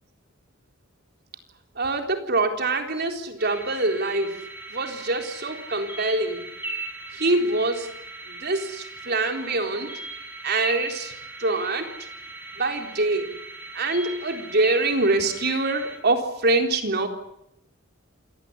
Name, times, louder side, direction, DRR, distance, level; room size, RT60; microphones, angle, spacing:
voice 1, 1.8-4.4 4.7-6.5 7.1-7.9 8.3-9.9 10.4-11.1 11.4-11.9 12.6-13.3 13.7-17.1, right 2 dB, 55° right, 4 dB, 4.0 m, -24 dB
sound 1, 3.4-16.0, right 3 dB, 10° right, 7.6 m, -38 dB
28.0 x 18.0 x 9.9 m, 0.80 s
head